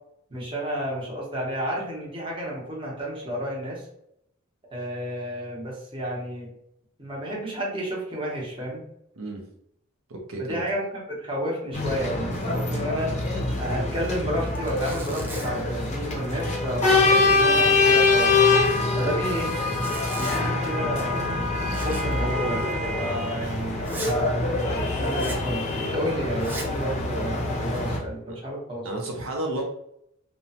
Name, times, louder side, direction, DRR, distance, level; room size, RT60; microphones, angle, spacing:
voice 1, 0.3-3.9 4.7-6.5 7.0-8.8 10.4-13.1 13.6-18.3 19.0-19.5 20.1-21.3 21.8-22.6 23.0-23.8 25.0-28.9, equal, 25° right, -4 dB, 0.8 m, -31 dB
voice 2, 9.2-9.5 10.1-10.6 19.0-19.2 28.3-28.4 28.8-29.6, right 1 dB, 75° right, 1 dB, 0.6 m, -32 dB
sound 1, 11.7-28.0, left 3 dB, 35° left, 0.6 m, -24 dB
Zipper (clothing), 12.3-12.7 12.9-13.0 13.4-13.5 14.1-14.2 14.5-15.7 16.2-16.5 16.8-18.2 19.5-20.5 21.7-22.2 22.5-22.6 23.1-23.2 23.8-24.2 25.1-25.5 26.3-26.8 27.4-28.0, right 2 dB, 10° right, 0.4 m, -40 dB
3.0 x 2.1 x 2.7 m, 0.75 s
head